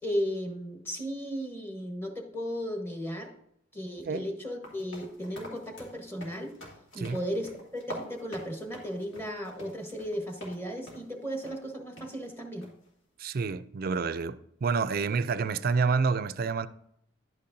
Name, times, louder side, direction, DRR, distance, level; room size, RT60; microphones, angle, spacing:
voice 1, 0.0-3.3 3.7-6.6 6.9-12.7, equal, 10° left, 1.2 m, -35 dB
sound 1, 4.6-10.6 10.9-11.1 11.4-11.6 12.0-12.1 12.6-12.9, equal, 85° left, 2.3 m, -46 dB
voice 2, 13.2-16.7, right 5 dB, 50° right, 0.4 m, -28 dB
11.0 x 8.4 x 2.7 m
head